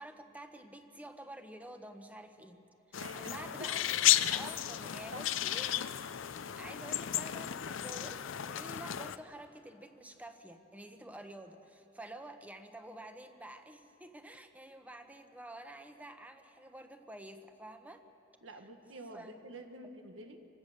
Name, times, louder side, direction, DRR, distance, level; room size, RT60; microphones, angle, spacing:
voice 1, 0.0-2.6 2.9-3.8 4.3-5.8 6.6-18.0 19.1-19.4, right 1 dB, 10° right, 7 dB, 1.0 m, -49 dB
sound 1, 2.9-9.2, left 12 dB, 75° left, 0.5 m, -33 dB
voice 2, 2.9-3.7 4.6-4.7 5.1-5.2 18.4-20.4, right 1 dB, 80° right, 6 dB, 1.6 m, -48 dB
27.0 x 16.0 x 6.6 m, 2.9 s
head